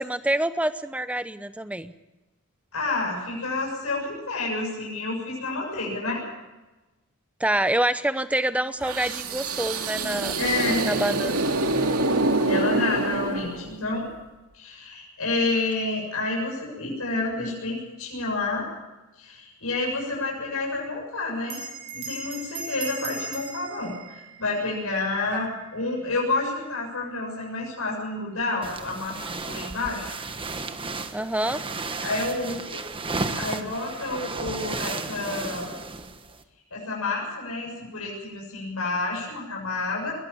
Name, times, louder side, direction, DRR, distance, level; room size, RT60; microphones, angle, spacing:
voice 1, 0.0-1.9 7.4-10.4 10.8-11.4 25.3-25.4 31.1-31.6, right 1 dB, 5° right, 12 dB, 0.8 m, -26 dB
voice 2, 2.7-6.2 10.4-10.8 12.4-14.0 14.5-18.7 19.2-21.6 21.9-30.1 32.0-32.8 33.3-35.7 36.7-40.1, left 3 dB, 75° left, -2 dB, 7.3 m, -29 dB
sound 1, 8.8-13.9, right 2 dB, 80° right, 2.5 m, -26 dB
Bell, 21.4-26.3, right 4 dB, 55° right, 5.6 m, -39 dB
sound 2, 28.6-36.4, right 3 dB, 25° right, 1.3 m, -33 dB
22.0 x 18.0 x 7.2 m, 1.1 s
head